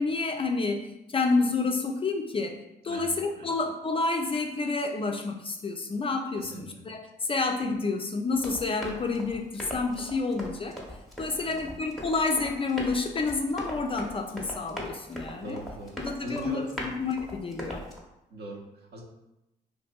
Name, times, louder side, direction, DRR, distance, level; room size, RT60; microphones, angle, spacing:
voice 1, 0.0-2.6 2.8-10.8 11.2-15.6 16.0-17.8, left 3 dB, 25° left, 3 dB, 0.3 m, -29 dB
voice 2, 2.9-3.5 6.3-6.9 11.4-11.7 15.4-16.9 18.3-19.0, right 2 dB, 55° right, 0 dB, 0.7 m, -42 dB
Run, 8.3-18.0, equal, ahead, 0.9 m, -40 dB
2.6 x 2.5 x 2.2 m, 0.90 s
hypercardioid pair, 45°, 21 cm